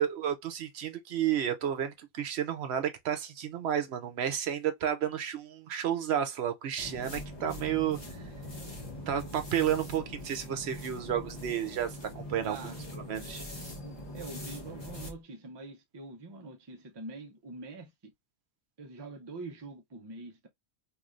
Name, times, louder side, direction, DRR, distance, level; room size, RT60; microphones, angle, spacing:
voice 1, 0.0-8.0 9.1-12.7 13.1-13.4, right 9 dB, 75° right, 0.9 m, -31 dB
sound 1, 6.8-15.2, left 1 dB, 25° left, 0.9 m, -42 dB
voice 2, 12.4-12.8 14.1-18.1 18.8-20.5, right 3 dB, 30° right, 0.5 m, -44 dB
3.1 x 2.6 x 2.4 m
omnidirectional pair, 1.1 m